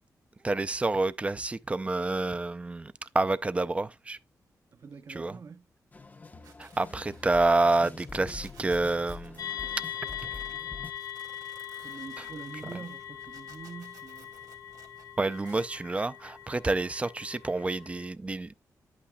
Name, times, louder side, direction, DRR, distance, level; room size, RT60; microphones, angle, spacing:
voice 1, 0.4-4.2 5.1-5.4 6.6-9.5 10.2-10.3 15.2-18.5, right 2 dB, 20° right, 0.4 m, -28 dB
voice 2, 4.7-5.7 11.8-14.3, right 5 dB, 50° right, 0.8 m, -45 dB
sound 1, 5.9-10.9, left 4 dB, 25° left, 0.6 m, -45 dB
sound 2, 6.4-10.6 10.9-15.6, right 6 dB, 75° right, 2.1 m, -57 dB
sound 3, 9.4-18.1, left 10 dB, 75° left, 1.6 m, -41 dB
11.0 x 8.5 x 2.2 m
wide cardioid pair, 120°, 7 cm